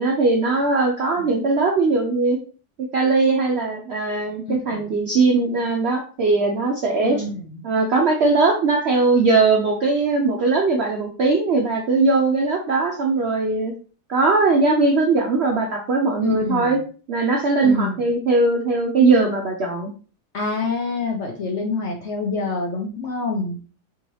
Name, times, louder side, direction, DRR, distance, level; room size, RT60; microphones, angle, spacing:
voice 1, 0.0-2.4 2.9-7.2 7.6-13.7 14.1-16.8 17.1-19.9, right 3 dB, 70° right, 1 dB, 0.6 m, -20 dB
voice 2, 4.5-4.9 7.0-7.6 16.2-16.8 17.6-18.1 20.3-23.6, left 3 dB, 60° left, 1 dB, 0.8 m, -27 dB
4.5 x 2.9 x 3.0 m, 0.38 s
omnidirectional pair, 1.7 m